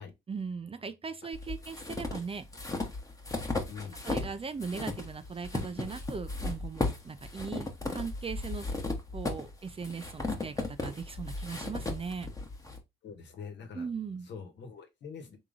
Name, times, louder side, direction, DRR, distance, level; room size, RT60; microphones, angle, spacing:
voice 1, 0.3-2.4 4.0-8.7 9.1-12.3 13.7-14.3, right 5 dB, 30° right, 0.6 m, -39 dB
sound 1, 1.3-4.3 4.6-12.8, left 2 dB, 15° left, 1.1 m, -35 dB
voice 2, 3.7-4.0 13.0-13.9 14.3-15.4, left 6 dB, 65° left, 1.3 m, -44 dB
3.6 x 3.0 x 3.9 m
cardioid pair, 90°, 20 cm